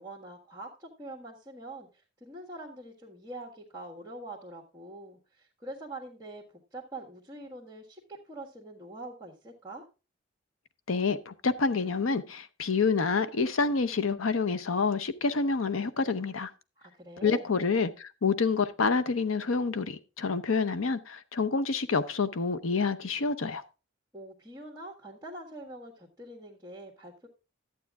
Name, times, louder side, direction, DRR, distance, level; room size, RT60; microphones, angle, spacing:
voice 1, 0.0-1.9 2.2-9.8 16.8-17.5 24.1-27.3, right 2 dB, 15° right, 1.5 m, -44 dB
voice 2, 10.9-16.5 17.2-23.6, left 4 dB, 85° left, 0.8 m, -28 dB
12.0 x 8.3 x 3.5 m
head